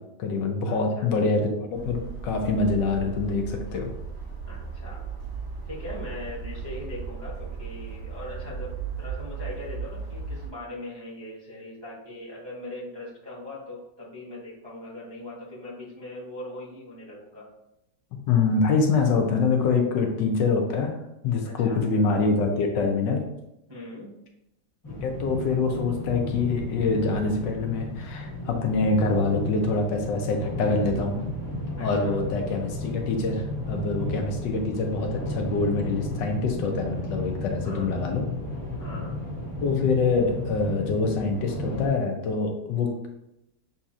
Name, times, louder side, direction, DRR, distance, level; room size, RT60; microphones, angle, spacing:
voice 1, 0.0-3.9 18.3-21.0 21.2-23.2 25.0-31.2 31.8-38.3 39.6-43.1, left 4 dB, 75° left, 3 dB, 1.4 m, -25 dB
voice 2, 0.6-1.2 4.5-5.1 5.7-17.4 21.4-21.8 23.7-24.1 31.8-32.2 34.0-34.3 37.6-38.0 38.8-39.2, left 1 dB, 20° right, -8 dB, 0.8 m, -40 dB
sound 1, 1.7-10.5, right 5 dB, 50° right, 2.3 m, -36 dB
sound 2, 24.8-41.9, left 1 dB, 25° left, 0.4 m, -34 dB
6.7 x 2.8 x 2.4 m, 0.86 s
omnidirectional pair, 2.0 m